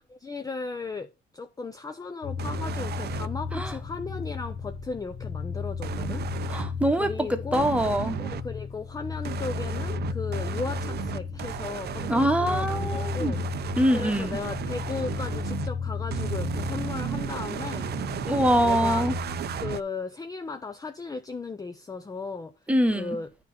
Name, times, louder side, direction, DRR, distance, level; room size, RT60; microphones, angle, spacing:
voice 1, 0.1-6.6 7.0-7.6 8.2-13.4 13.9-17.9 18.6-19.1 19.6-22.5 22.9-23.4, left 4 dB, 20° left, 0.5 m, -36 dB
sound 1, 2.2-19.8, left 5 dB, 65° left, 1.7 m, -34 dB
sound 2, 2.4-3.3 5.8-6.7 7.5-8.4 9.2-15.7 16.1-19.8, right 10 dB, 55° right, 0.5 m, -34 dB
voice 2, 6.5-8.2 12.1-13.3 13.8-14.4 18.3-19.1 22.7-23.2, equal, 5° right, 1.2 m, -24 dB
9.1 x 3.7 x 5.7 m
cardioid pair, 90°, 20 cm